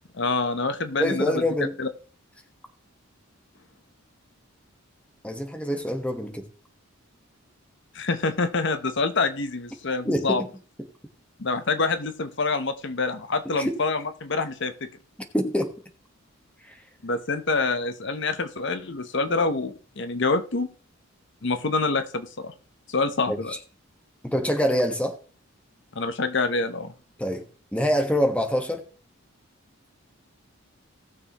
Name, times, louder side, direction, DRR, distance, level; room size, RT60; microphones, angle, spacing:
voice 1, 0.1-1.4 1.8-1.9 7.9-10.4 11.4-14.9 17.0-20.7 21.4-22.5 22.9-23.5 25.9-26.9, left 3 dB, 55° left, 0.9 m, -26 dB
voice 2, 1.0-1.8 5.2-6.5 10.0-10.5 13.5-13.8 15.3-15.7 16.6-16.8 23.3-23.4 24.2-25.2 27.2-27.4 27.7-28.8, equal, 5° left, 1.3 m, -25 dB
18.5 x 6.7 x 3.0 m
head